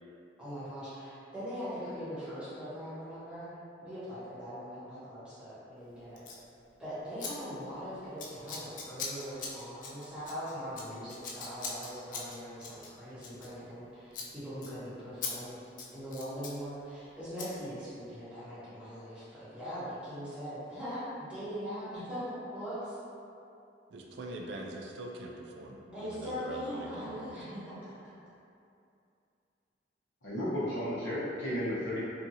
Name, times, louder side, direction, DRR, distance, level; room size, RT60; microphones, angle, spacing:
voice 1, 0.4-3.5 3.8-6.2 6.8-15.6 15.9-22.9 25.8-27.8, equal, 5° right, -14 dB, 1.0 m, -41 dB
Scissors, 6.2-6.4 7.2-7.3 7.6-7.8 8.2-13.8 14.1-14.3 14.6-14.7 15.2-15.3 15.6-16.6 17.4-17.5, left 4 dB, 45° left, 0.4 m, -41 dB
voice 2, 23.9-27.3, right 1 dB, 65° right, 0 dB, 0.3 m, -43 dB
voice 3, 30.2-32.0, equal, 80° left, -10 dB, 1.0 m, -33 dB
2.7 x 2.5 x 2.7 m, 2.6 s
head